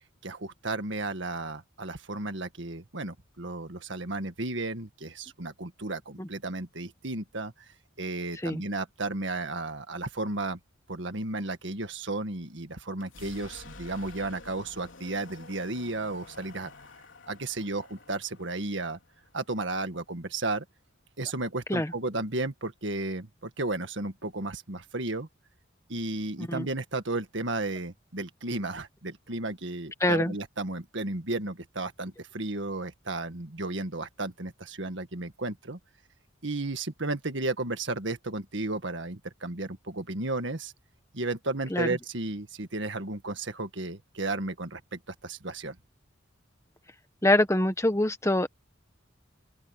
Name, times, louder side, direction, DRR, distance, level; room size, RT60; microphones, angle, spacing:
voice 1, 0.2-7.7 8.0-10.6 10.9-16.7 17.3-19.0 19.3-20.6 21.2-25.3 25.9-35.8 36.4-40.7 41.1-45.8, right 2 dB, 65° right, 1.8 m, -33 dB
sound 1, 12.9-20.7, left 3 dB, 75° left, 3.9 m, -50 dB
voice 2, 26.4-26.7 30.0-30.3 41.7-41.9 47.2-48.5, left 1 dB, 15° left, 1.2 m, -24 dB
open air
head